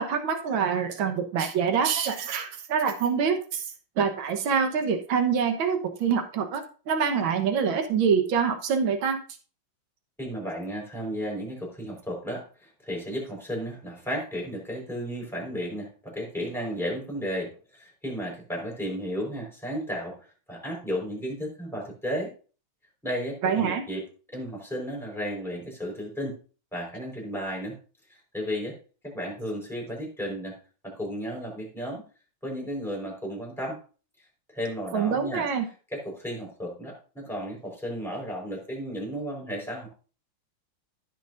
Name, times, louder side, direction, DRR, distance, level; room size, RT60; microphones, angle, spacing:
voice 1, 0.0-3.6 4.0-9.2 23.4-23.8 34.9-35.6, right 6 dB, 75° right, 6 dB, 1.9 m, -25 dB
voice 2, 10.2-20.1 20.5-22.3 23.0-24.0 24.3-26.4 26.7-27.8 28.3-28.8 29.0-30.6 30.8-32.0 32.4-33.8 34.5-35.5 35.9-39.9, equal, ahead, -4 dB, 4.4 m, -33 dB
16.0 x 6.1 x 2.6 m, 0.37 s
omnidirectional pair, 2.3 m